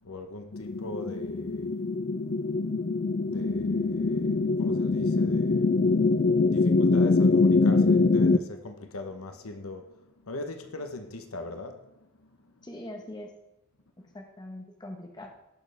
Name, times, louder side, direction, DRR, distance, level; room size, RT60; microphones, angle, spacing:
voice 1, 0.0-1.9 2.1-12.7, left 2 dB, 70° left, 0.9 m, -41 dB
sound 1, 0.5-8.4, left 3 dB, 40° left, 0.4 m, -24 dB
voice 2, 12.6-13.3 14.1-15.3, left 1 dB, 20° left, 1.2 m, -42 dB
17.5 x 6.4 x 3.4 m
head